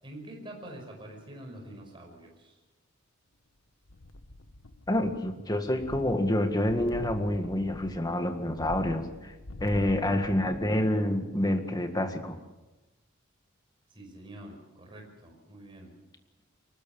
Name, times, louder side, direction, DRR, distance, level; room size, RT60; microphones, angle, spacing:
voice 1, 0.0-2.6 9.6-10.0 13.9-15.9, right 1 dB, 25° right, 1 dB, 5.7 m, -46 dB
sound 1, 3.9-5.3 5.6-10.9 11.3-11.4, left 1 dB, 80° left, 1.4 m, -45 dB
voice 2, 4.9-9.3 9.6-12.4, left 1 dB, 20° left, 6 dB, 1.8 m, -28 dB
23.5 x 20.0 x 7.1 m, 1.1 s
head